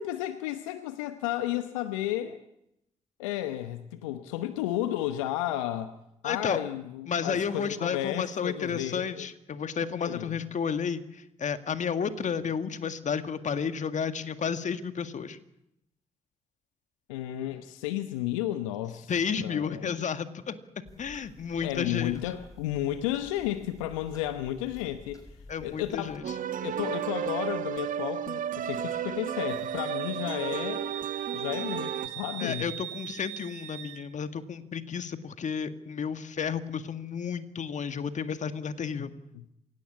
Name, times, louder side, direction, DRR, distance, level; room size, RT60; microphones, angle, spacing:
voice 1, 0.0-2.4 3.2-5.9 6.2-9.3 10.0-10.3 17.1-19.1 19.4-19.9 21.6-25.2 25.6-26.2 26.6-30.9 31.3-32.7 39.3-39.4, left 13 dB, 80° left, 11 dB, 1.0 m, -33 dB
voice 2, 6.2-6.6 7.1-15.4 19.1-20.6 21.0-22.2 25.5-26.2 32.4-39.1, left 6 dB, 50° left, 10 dB, 1.9 m, -32 dB
sound 1, 20.9-26.2, left 2 dB, 20° left, 6.0 m, -51 dB
sound 2, 26.2-32.1, right 9 dB, 55° right, 1.3 m, -33 dB
Wind instrument woodwind instrument, 29.5-34.0, right 13 dB, 80° right, 1.7 m, -40 dB
27.5 x 17.5 x 8.6 m, 0.83 s
hypercardioid pair, 40°, 16 cm